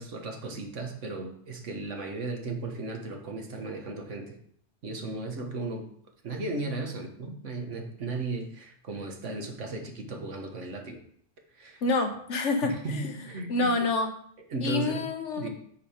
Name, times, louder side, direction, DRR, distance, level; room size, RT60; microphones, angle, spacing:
voice 1, 0.0-4.4 4.8-5.9 6.2-11.0 11.5-11.8 12.6-13.9 14.5-15.0 15.4-15.5, right 3 dB, 80° right, 3 dB, 1.6 m, -35 dB
voice 2, 11.8-13.1 13.5-14.1 14.6-15.5, left 3 dB, 75° left, 5 dB, 1.3 m, -27 dB
8.5 x 5.2 x 4.3 m, 0.63 s
omnidirectional pair, 1.3 m